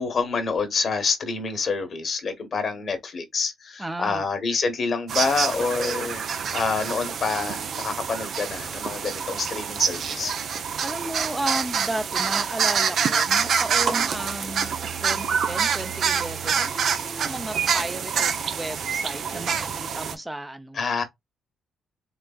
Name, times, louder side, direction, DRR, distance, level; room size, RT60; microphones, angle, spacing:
voice 1, 0.0-10.3 20.7-21.0, left 4 dB, 50° left, 1.2 m, -27 dB
voice 2, 3.8-4.2 10.8-14.7 15.0-20.8, right 1 dB, 10° right, 0.6 m, -33 dB
sound 1, 5.1-20.1, right 7 dB, 60° right, 0.7 m, -26 dB
4.0 x 3.4 x 2.3 m
cardioid pair, 90°, 0 cm